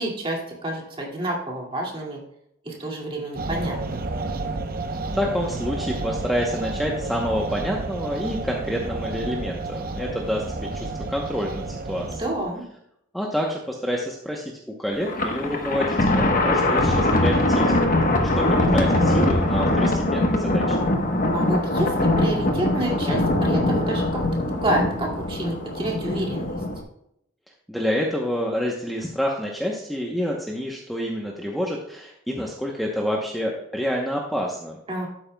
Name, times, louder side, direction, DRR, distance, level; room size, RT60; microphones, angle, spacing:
voice 1, 0.0-2.2 2.6-4.0 12.1-12.6 21.3-24.2 24.5-26.5 34.9-35.1, right 1 dB, 25° right, -2 dB, 2.2 m, -29 dB
sound 1, 3.4-12.6, right 3 dB, 45° right, 0.7 m, -31 dB
voice 2, 5.1-12.2 13.1-14.4 14.8-17.7 18.2-20.8 27.7-34.8, equal, ahead, -1 dB, 0.8 m, -28 dB
Thunder, 15.0-26.8, left 1 dB, 40° left, 1.1 m, -22 dB
12.0 x 9.0 x 2.2 m, 0.76 s
head